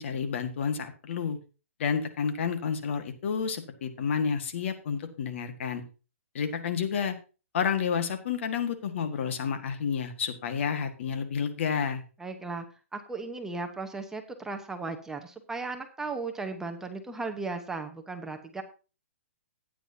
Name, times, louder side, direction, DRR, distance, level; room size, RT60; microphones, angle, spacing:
voice 1, 0.0-1.4 1.8-5.8 6.3-7.1 7.5-12.0, left 6 dB, 55° left, 8 dB, 1.7 m, -30 dB
voice 2, 12.2-12.6 12.9-18.6, right 3 dB, 5° right, 5 dB, 1.0 m, -36 dB
14.0 x 9.3 x 2.8 m, 0.34 s
hypercardioid pair, 140°, 8 cm